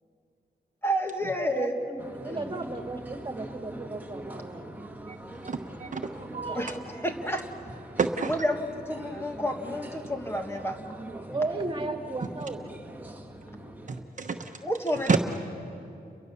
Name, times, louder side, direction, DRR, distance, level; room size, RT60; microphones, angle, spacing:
voice 1, 0.8-1.7 2.2-2.5 6.5-6.8 7.0-7.4 8.3-10.8 14.6-15.2, equal, 15° left, 4 dB, 1.6 m, -30 dB
voice 2, 1.5-4.7 5.3-5.4 6.0-6.7 11.3-12.6, right 3 dB, 30° right, 4 dB, 2.1 m, -35 dB
sound 1, 2.0-14.0, right 1 dB, 10° right, 1.6 m, -43 dB
voice 3, 5.4-6.1 8.0-8.3 13.9-14.6 15.1-15.2, right 5 dB, 50° right, 5 dB, 1.0 m, -28 dB
30.0 x 23.5 x 7.0 m, 2.7 s
wide cardioid pair, 140°, 17 cm